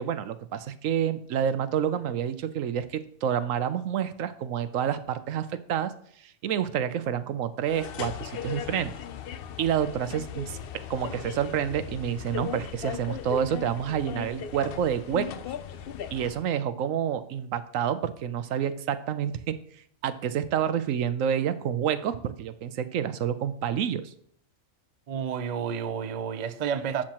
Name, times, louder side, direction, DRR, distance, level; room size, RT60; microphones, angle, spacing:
voice 1, 0.0-5.9 6.2-8.9 9.6-15.3 16.1-19.6 20.0-24.1, right 9 dB, 75° right, 1.0 m, -28 dB
sound 1, 7.6-16.5, left 8 dB, 60° left, 0.6 m, -38 dB
voice 2, 25.1-27.0, right 7 dB, 45° right, 0.5 m, -30 dB
12.0 x 7.5 x 3.0 m
omnidirectional pair, 1.4 m